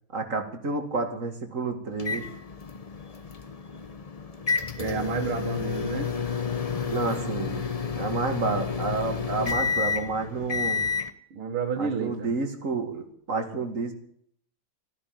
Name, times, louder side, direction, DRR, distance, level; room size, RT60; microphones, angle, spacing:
voice 1, 0.1-2.3 6.9-7.6 8.0-10.8 11.8-13.9, right 3 dB, 40° right, 6 dB, 2.5 m, -30 dB
sound 1, 2.0-11.1, left 6 dB, 45° left, 0.4 m, -30 dB
voice 2, 4.8-6.1 11.3-12.3, right 6 dB, 90° right, 3 dB, 2.5 m, -30 dB
15.0 x 10.5 x 9.1 m, 0.65 s
omnidirectional pair, 2.3 m